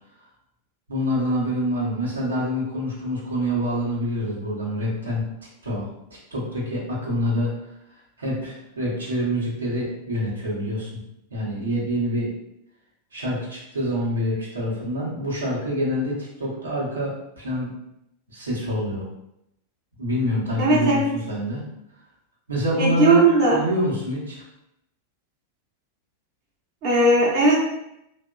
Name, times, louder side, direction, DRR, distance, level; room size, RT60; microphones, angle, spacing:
voice 1, 0.9-5.2 5.6-5.9 6.3-7.5 8.2-11.0 11.3-12.3 13.1-17.7 18.3-19.0 20.0-21.6 22.5-24.5, equal, 75° right, -5 dB, 0.8 m, -26 dB
voice 2, 20.6-21.1 22.8-23.6 26.8-27.6, right 2 dB, 40° right, -5 dB, 0.6 m, -17 dB
2.8 x 2.1 x 2.2 m, 0.81 s
figure-of-eight pair, 90°, 0 cm